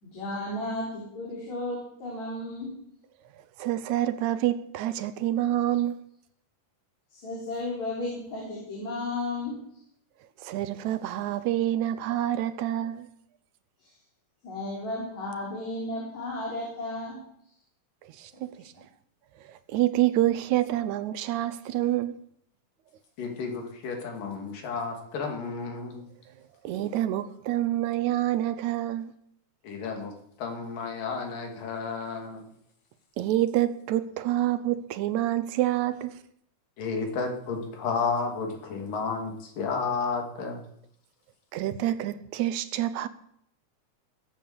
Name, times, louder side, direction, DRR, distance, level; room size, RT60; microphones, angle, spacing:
voice 1, 0.0-2.7 7.1-9.5 14.4-17.2, left 2 dB, 60° left, 5.2 m, -34 dB
voice 2, 3.6-6.0 10.4-13.1 18.0-18.7 19.4-22.1 26.3-26.4 26.6-29.1 33.2-36.2 41.5-43.1, right 13 dB, 75° right, 2.0 m, -27 dB
voice 3, 23.2-26.0 29.6-30.1 30.4-32.4 36.8-40.6, left 4 dB, 90° left, 4.1 m, -32 dB
19.0 x 8.3 x 7.0 m
omnidirectional pair, 3.7 m